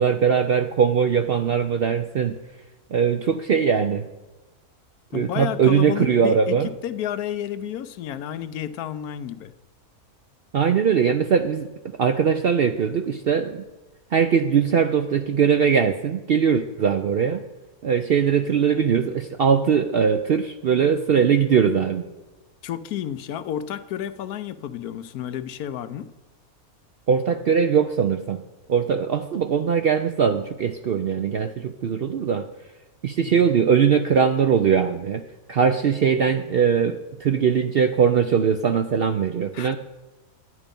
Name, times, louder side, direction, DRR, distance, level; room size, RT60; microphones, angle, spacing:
voice 1, 0.0-2.4 2.9-4.1 5.1-6.7 10.5-13.6 14.1-17.4 17.8-22.1 27.1-28.4 28.7-32.5 33.0-39.8, right 7 dB, 65° right, 7 dB, 0.6 m, -21 dB
voice 2, 5.1-6.6 6.8-9.5 22.6-26.1 33.2-33.4 39.5-39.8, left 10 dB, 80° left, 12 dB, 1.1 m, -31 dB
11.5 x 9.9 x 5.2 m, 1.1 s
omnidirectional pair, 1.6 m